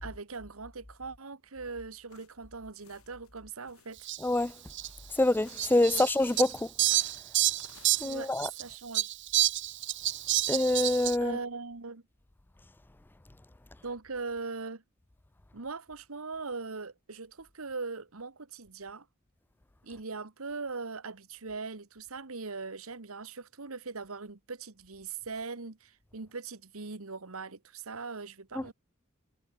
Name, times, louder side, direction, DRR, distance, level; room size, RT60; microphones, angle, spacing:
voice 1, 0.0-4.1 5.9-6.1 8.0-9.2 11.2-12.0 13.8-14.8 15.5-19.1 19.8-28.7, right 4 dB, 85° right, 1.5 m, -40 dB
sound 1, 2.1-8.1, left 7 dB, 90° left, 5.4 m, -58 dB
Fowl, 4.1-4.2 4.7-4.9 5.6-8.6 8.9-11.2, right 14 dB, 55° right, 1.0 m, -28 dB
voice 2, 4.2-4.5 5.2-6.7 8.0-8.5 10.5-11.4 28.6-28.7, left 2 dB, 10° left, 0.3 m, -26 dB
head